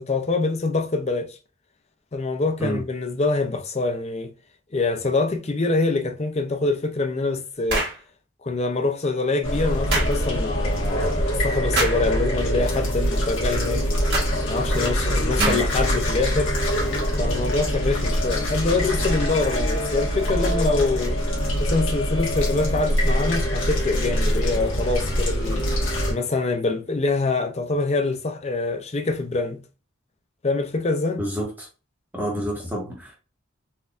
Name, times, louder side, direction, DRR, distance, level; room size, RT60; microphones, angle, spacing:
voice 1, 0.0-1.4 2.1-4.3 4.7-7.9 8.4-13.9 14.5-16.5 17.2-21.2 21.6-25.7 26.1-29.6 30.4-31.2, left 3 dB, 35° left, 0.5 m, -25 dB
sound 1, 7.7-8.0 9.9-10.1 11.7-12.0 14.1-14.3 15.4-15.8, right 2 dB, 60° right, 1.5 m, -24 dB
sound 2, 9.4-26.1, equal, 75° left, 1.5 m, -24 dB
voice 2, 31.2-31.7 32.1-33.2, right 1 dB, 10° right, 1.2 m, -28 dB
4.2 x 2.6 x 2.4 m
head